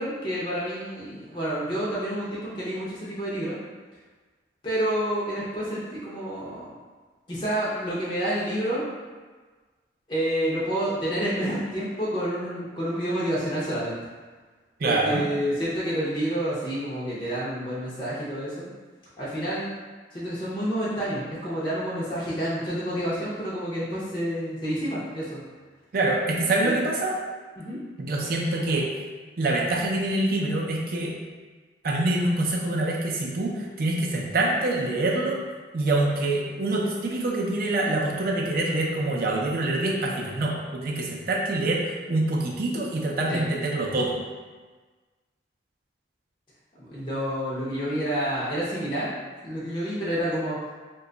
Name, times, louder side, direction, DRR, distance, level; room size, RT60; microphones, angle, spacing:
voice 1, 0.0-3.6 4.6-6.7 7.3-8.9 10.1-13.9 14.8-18.7 19.2-19.7 20.1-25.4 26.6-26.7 27.6-27.8 43.3-43.5 46.7-49.1 49.4-50.6, equal, 25° left, -9 dB, 0.6 m, -29 dB
voice 2, 14.8-15.2 25.9-27.1 28.0-28.9 29.4-31.1 31.8-35.4 35.7-41.8 42.1-44.2, right 2 dB, 50° right, -2 dB, 0.4 m, -25 dB
2.9 x 2.2 x 3.7 m, 1.4 s
head